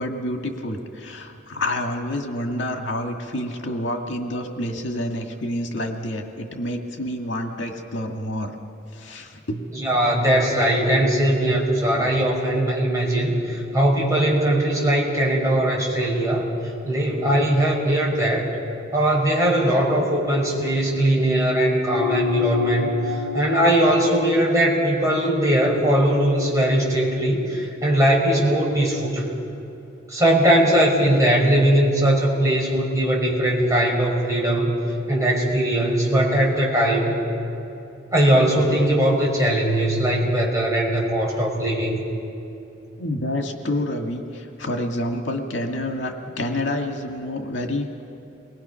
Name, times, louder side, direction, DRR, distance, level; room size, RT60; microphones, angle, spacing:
voice 1, 0.0-8.5 8.9-9.6 11.9-12.2 43.0-48.0, left 1 dB, 80° left, 3 dB, 1.8 m, -28 dB
voice 2, 9.7-16.5 16.8-18.5 18.9-29.3 30.1-34.8 35.1-37.2 38.1-42.0, right 1 dB, 15° right, -4 dB, 5.3 m, -20 dB
sound 1, 21.9-26.7, left 6 dB, 55° left, 7.4 m, -30 dB
29.0 x 22.0 x 5.7 m, 2.7 s
head